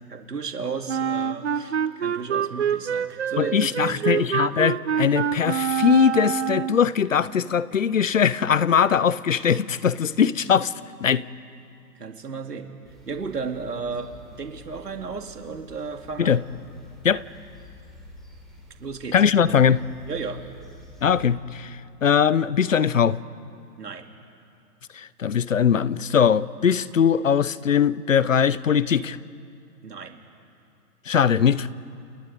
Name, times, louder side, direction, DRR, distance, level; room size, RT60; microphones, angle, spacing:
voice 1, 0.1-4.3 11.9-12.7 13.1-16.4 18.8-19.1 20.1-20.4 23.8-24.1 29.8-30.2, right 5 dB, 70° right, 2.6 m, -34 dB
Wind instrument woodwind instrument, 0.9-6.9, right 8 dB, 45° right, 0.7 m, -26 dB
voice 2, 3.4-10.7 11.0-11.2 16.2-16.4 17.0-17.2 19.1-19.8 21.0-23.2 24.9-29.2 31.1-31.7, left 7 dB, 50° left, 0.8 m, -21 dB
sound 1, 12.8-21.4, left 1 dB, ahead, 3.6 m, -48 dB
30.0 x 28.0 x 5.3 m
figure-of-eight pair, 140°, 50 cm